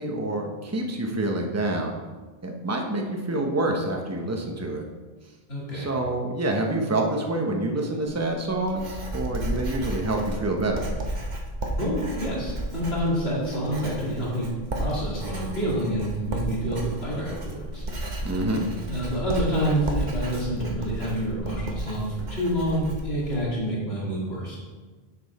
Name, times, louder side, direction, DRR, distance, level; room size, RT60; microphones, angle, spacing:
voice 1, 0.0-1.9 2.4-4.8 5.7-10.9 18.2-18.7, right 2 dB, 15° right, 2 dB, 0.8 m, -27 dB
voice 2, 5.5-5.9 11.8-14.5 14.8-17.8 18.9-24.6, equal, 75° left, -5 dB, 2.5 m, -28 dB
Writing, 8.0-23.4, right 1 dB, 45° right, 1.1 m, -33 dB
7.0 x 6.8 x 4.2 m, 1.3 s
omnidirectional pair, 1.1 m